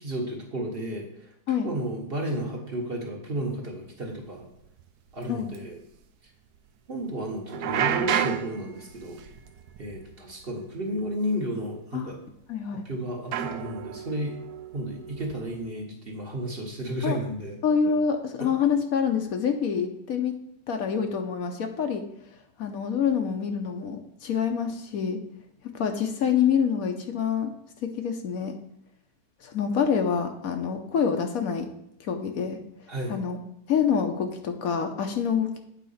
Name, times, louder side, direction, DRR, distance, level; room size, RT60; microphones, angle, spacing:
voice 1, 0.0-4.5 5.1-5.8 6.9-9.2 9.8-12.2 12.8-14.3 14.7-17.6 32.9-33.2, right 1 dB, 40° right, 0 dB, 1.5 m, -32 dB
sound 1, 4.0-4.1 4.6-4.8 5.1-5.2 5.5-5.6 7.5-10.5 10.7-11.1 12.0-12.1 13.3-15.7, right 8 dB, 85° right, 1.1 m, -31 dB
voice 2, 12.5-12.9 17.0-17.2 17.6-20.3 20.7-22.1 22.6-25.2 25.7-27.5 27.8-28.5 29.4-31.7 32.0-32.6 33.1-33.4 33.7-35.6, left 7 dB, 70° left, 5 dB, 1.3 m, -26 dB
8.5 x 4.1 x 5.6 m, 0.77 s
omnidirectional pair, 1.6 m